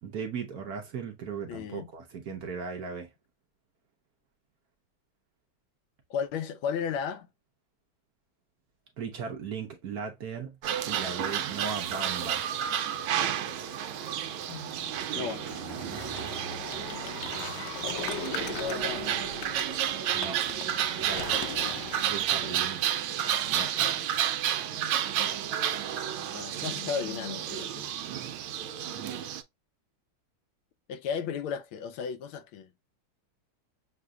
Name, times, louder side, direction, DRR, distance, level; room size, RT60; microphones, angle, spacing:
voice 1, 0.0-3.1 9.0-10.6 10.9-12.8 17.2-17.6 20.1-20.4 21.0-21.5 22.1-22.8 23.5-24.2 28.9-29.3, right 5 dB, 60° right, 1.1 m, -38 dB
voice 2, 1.5-1.9 6.1-7.3 14.5-14.8 15.1-15.4 18.5-19.2 22.4-22.6 23.5-23.8 26.3-27.9 30.9-32.7, left 7 dB, 85° left, 1.5 m, -35 dB
sound 1, 10.6-29.4, right 10 dB, 85° right, 1.4 m, -31 dB
sound 2, 13.6-22.2, left 7 dB, 70° left, 1.1 m, -40 dB
6.7 x 2.6 x 2.3 m
omnidirectional pair, 2.3 m